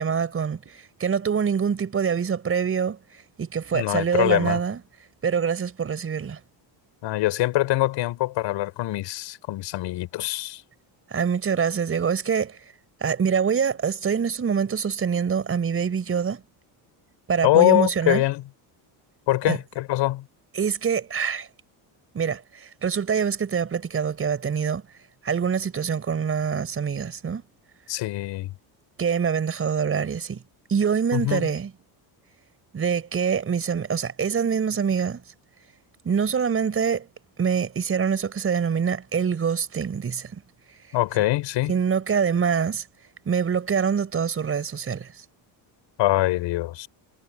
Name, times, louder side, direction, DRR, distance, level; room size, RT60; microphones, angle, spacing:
voice 1, 0.0-4.8 5.2-6.4 11.1-12.6 13.0-16.4 17.3-18.2 19.4-19.6 20.5-21.5 22.1-24.8 25.2-27.4 29.0-30.4 30.7-31.7 32.7-35.2 36.0-37.1 37.4-40.4 41.7-42.8 43.2-45.1, right 6 dB, 30° right, 4.8 m, -25 dB
voice 2, 3.7-4.6 7.0-10.6 17.4-18.4 19.3-20.2 27.9-28.5 31.1-31.5 40.9-41.7 46.0-46.9, left 16 dB, 70° left, 5.3 m, -23 dB
cardioid pair, 145°, 46 cm